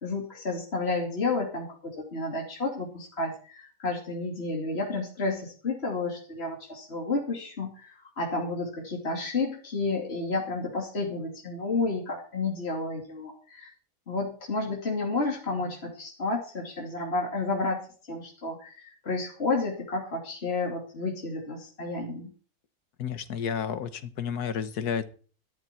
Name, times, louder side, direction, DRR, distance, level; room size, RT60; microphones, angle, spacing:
voice 1, 0.0-13.7 14.1-17.8 18.1-22.3, left 3 dB, 40° left, -1 dB, 3.0 m, -31 dB
voice 2, 23.0-25.1, left 7 dB, 85° left, 12 dB, 1.7 m, -31 dB
14.0 x 13.0 x 4.5 m, 0.41 s
omnidirectional pair, 1.6 m